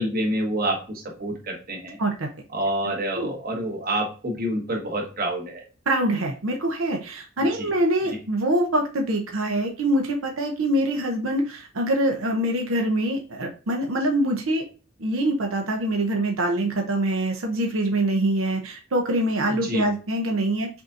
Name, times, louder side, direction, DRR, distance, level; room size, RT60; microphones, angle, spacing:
voice 1, 0.0-2.0 2.5-5.6 7.6-7.7 19.6-19.9, right 1 dB, 45° right, 1 dB, 1.2 m, -27 dB
voice 2, 5.9-14.6 15.0-20.7, right 1 dB, 90° right, 2 dB, 0.8 m, -24 dB
5.9 x 2.7 x 2.6 m, 0.34 s
head